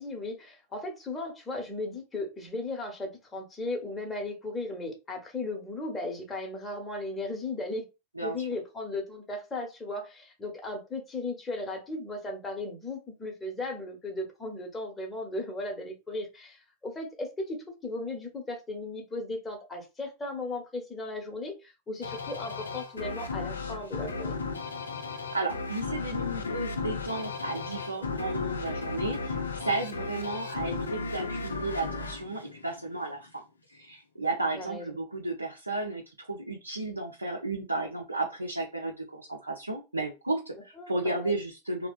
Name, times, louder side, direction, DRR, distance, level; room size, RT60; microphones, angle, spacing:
voice 1, 0.0-7.8 8.2-24.4 34.5-35.0 40.8-41.4, left 2 dB, 15° left, 1.0 m, -36 dB
voice 2, 8.2-8.5 25.0-33.4 33.7-41.9, right 2 dB, 85° right, 0.5 m, -33 dB
sound 1, 22.0-33.2, left 4 dB, 75° left, 0.5 m, -35 dB
3.2 x 2.1 x 2.4 m
figure-of-eight pair, 90°, 0 cm